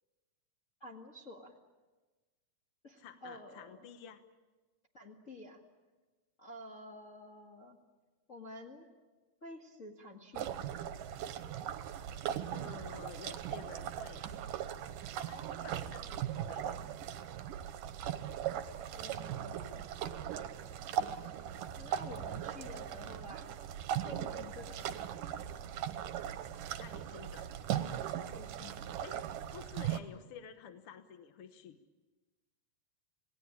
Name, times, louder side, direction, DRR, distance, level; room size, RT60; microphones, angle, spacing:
voice 1, 0.8-1.5 2.8-3.9 4.9-5.6 6.4-7.8 8.3-8.9 9.4-10.7 18.9-19.8 21.7-23.6 24.1-25.0 28.3-28.9, left 1 dB, 30° left, -1 dB, 1.7 m, -50 dB
voice 2, 3.0-4.2 12.1-14.2 15.3-16.8 26.7-27.5 29.0-29.2 29.5-31.8, left 7 dB, 55° left, 8 dB, 1.7 m, -51 dB
sound 1, 10.3-30.0, right 10 dB, 90° right, 2.7 m, -39 dB
28.0 x 18.5 x 8.8 m, 1.3 s
omnidirectional pair, 3.7 m